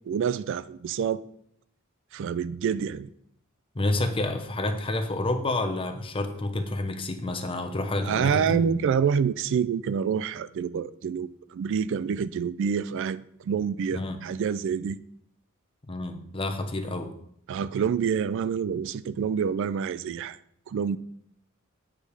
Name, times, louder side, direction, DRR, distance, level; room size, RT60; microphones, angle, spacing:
voice 1, 0.1-1.2 2.1-3.1 8.0-15.0 17.5-20.4 20.7-21.0, right 7 dB, 60° right, 0.3 m, -27 dB
voice 2, 3.7-8.9 13.9-14.2 15.9-17.1, left 2 dB, 25° left, 0.8 m, -29 dB
8.5 x 5.2 x 4.9 m
head